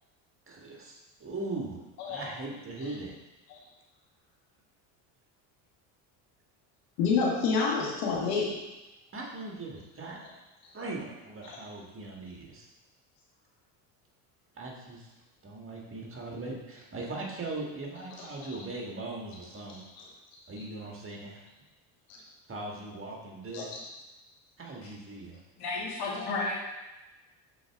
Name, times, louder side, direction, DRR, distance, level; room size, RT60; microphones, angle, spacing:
voice 1, 0.5-1.8 2.1-3.2 9.1-10.2 10.7-12.7 14.5-15.1 15.4-19.8 20.5-21.4 22.5-23.8 24.6-25.4, right 2 dB, 25° right, -1 dB, 1.6 m, -39 dB
voice 2, 7.0-8.6 11.4-11.6 18.4-18.5 23.5-23.8 26.2-26.3, left 5 dB, 85° left, -3 dB, 1.6 m, -28 dB
voice 3, 25.6-26.5, left 3 dB, 55° left, -4 dB, 2.2 m, -32 dB
7.0 x 4.2 x 3.5 m, 1.1 s
supercardioid pair, 85°, 46 cm